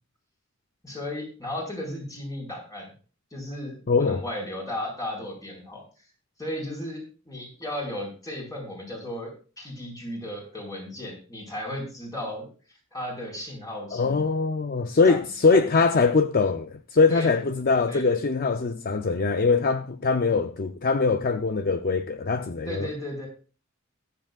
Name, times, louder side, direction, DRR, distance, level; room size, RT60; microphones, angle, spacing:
voice 1, 0.8-2.9 3.3-5.8 6.4-12.5 12.9-14.2 15.1-15.2 15.5-15.6 16.0-16.1 17.1-17.4 17.9-18.0 22.7-23.3, left 1 dB, 15° left, 4.6 m, -35 dB
voice 2, 3.9-4.2 13.9-22.9, left 4 dB, 40° left, 0.5 m, -22 dB
22.0 x 7.4 x 2.3 m
head